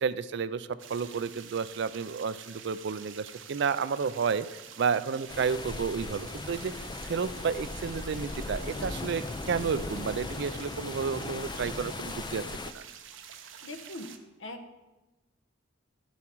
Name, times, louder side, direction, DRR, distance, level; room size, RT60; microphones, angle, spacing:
voice 1, 0.0-6.7 7.0-12.4 12.7-12.8, right 6 dB, 65° right, 15 dB, 0.4 m, -31 dB
sound 1, 0.8-14.2, right 8 dB, 85° right, 0.8 m, -48 dB
sound 2, 5.3-12.7, left 3 dB, 25° left, 0.4 m, -38 dB
voice 2, 13.6-14.1 14.4-14.7, left 1 dB, 75° left, 7 dB, 1.1 m, -41 dB
11.5 x 7.2 x 4.6 m, 1.1 s
head